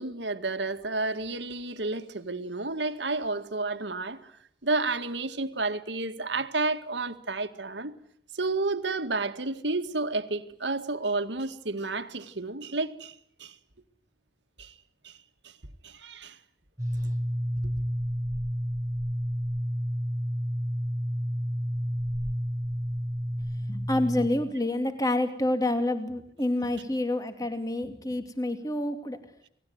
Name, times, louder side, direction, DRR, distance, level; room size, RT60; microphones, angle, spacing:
voice 1, 0.0-4.2 4.6-7.9 8.3-13.1 13.4-13.5 14.6-14.7 15.0-15.2 15.4-15.5 15.8-16.4, right 3 dB, 85° right, 2.0 m, -31 dB
sound 1, 16.8-24.3, equal, 20° right, 2.1 m, -30 dB
voice 2, 23.7-29.2, left 1 dB, 20° left, 2.7 m, -28 dB
29.5 x 20.0 x 9.5 m
head